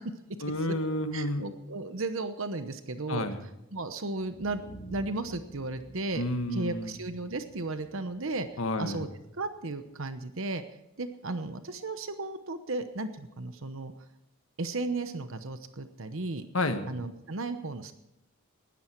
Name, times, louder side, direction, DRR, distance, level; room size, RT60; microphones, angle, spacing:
voice 1, 0.4-1.5 3.1-3.4 6.2-6.9 8.6-9.0 16.5-16.8, left 1 dB, 70° left, 8 dB, 1.5 m, -30 dB
voice 2, 1.1-4.6 4.9-6.2 6.5-8.5 8.8-9.1 9.4-10.6 11.0-13.9 14.6-16.4 16.9-17.9, right 2 dB, 65° right, 9 dB, 1.0 m, -35 dB
sound 1, 4.0-10.0, right 2 dB, 85° left, 3.2 m, -51 dB
19.0 x 13.5 x 4.6 m, 0.89 s
head